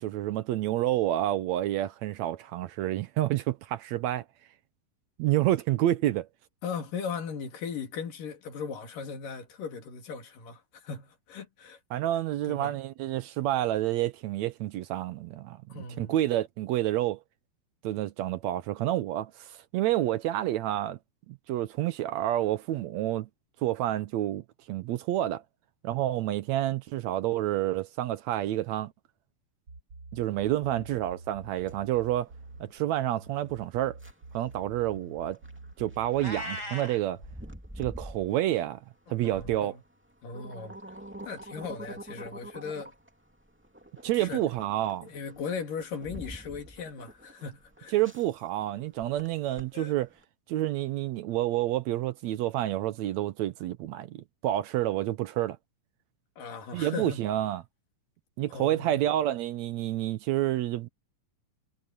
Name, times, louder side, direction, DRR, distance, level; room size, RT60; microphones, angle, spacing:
voice 1, 0.0-4.2 5.2-6.3 11.9-17.2 17.8-21.0 21.3-23.3 23.6-25.4 25.8-28.9 30.1-32.3 32.6-34.0 34.3-35.4 35.8-37.2 37.8-38.8 39.1-39.8 44.0-45.1 47.9-50.1 50.5-55.6 56.7-57.6 58.4-60.9, right 14 dB, 75° right, 1.7 m, -29 dB
voice 2, 6.6-11.8 12.4-12.8 15.7-16.1 30.6-30.9 39.2-39.8 40.2-40.8 41.2-42.9 44.1-44.4 45.0-48.0 49.7-49.9 56.4-57.2 58.5-59.1, left 5 dB, 75° left, 4.3 m, -38 dB
sound 1, 29.7-37.3, right 3 dB, 35° right, 4.8 m, -47 dB
sound 2, 31.4-50.2, right 1 dB, 5° right, 1.9 m, -47 dB
Meow, 36.2-37.0, left 1 dB, 30° left, 7.7 m, -37 dB
omnidirectional pair, 3.8 m